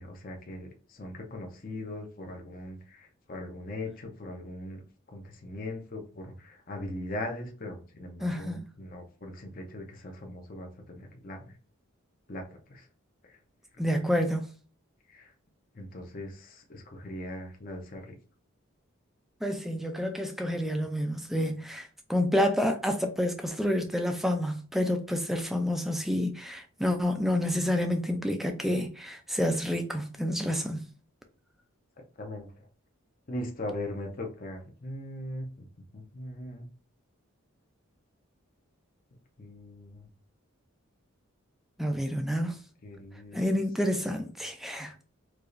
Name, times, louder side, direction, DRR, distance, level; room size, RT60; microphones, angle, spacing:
voice 1, 0.0-4.8 5.1-11.6 12.3-12.4 12.7-12.9 13.2-13.4 13.8-13.9 15.1-15.3 15.7-18.1 32.2-32.5 33.3-35.7 35.9-36.7 39.4-40.1 42.8-43.6, left 1 dB, 40° left, 0.7 m, -40 dB
voice 2, 8.2-8.6 13.8-14.5 19.4-30.8 41.8-42.6 43.3-44.9, equal, ahead, 0.4 m, -29 dB
4.7 x 2.4 x 2.5 m
head